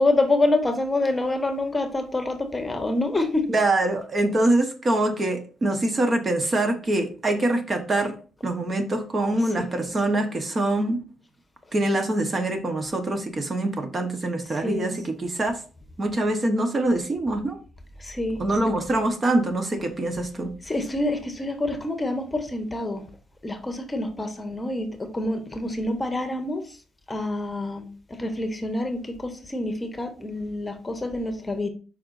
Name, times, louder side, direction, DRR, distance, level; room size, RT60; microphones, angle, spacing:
voice 1, 0.0-3.5 9.8-9.9 14.5-14.9 18.0-18.4 20.6-23.0 23.4-26.6 27.1-31.7, left 2 dB, 20° left, 1.1 m, -27 dB
voice 2, 3.5-8.2 8.4-11.0 11.7-15.6 16.0-17.6 18.4-20.6, right 2 dB, 35° right, 1.1 m, -24 dB
7.6 x 5.1 x 2.6 m
cardioid pair, 90°, 0 cm